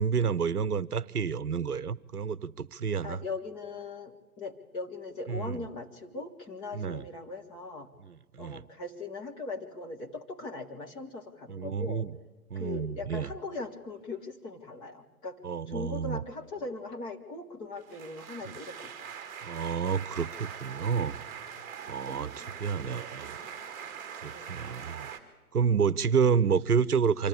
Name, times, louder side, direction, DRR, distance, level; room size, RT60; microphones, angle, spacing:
voice 1, 0.0-3.2 5.3-5.6 6.7-7.0 8.0-8.6 11.5-12.1 12.5-13.3 15.4-16.2 18.4-18.5 19.4-21.2 21.9-23.4 24.2-25.1 25.5-27.3, right 6 dB, 80° right, 0.7 m, -29 dB
voice 2, 3.0-7.9 8.4-12.1 12.5-15.4 15.7-19.2 22.0-22.2 24.3-24.5, left 3 dB, 10° left, 0.9 m, -40 dB
sound 1, 17.8-25.2, right 7 dB, 20° right, 1.8 m, -42 dB
25.0 x 14.0 x 8.3 m
figure-of-eight pair, 130°, 45 cm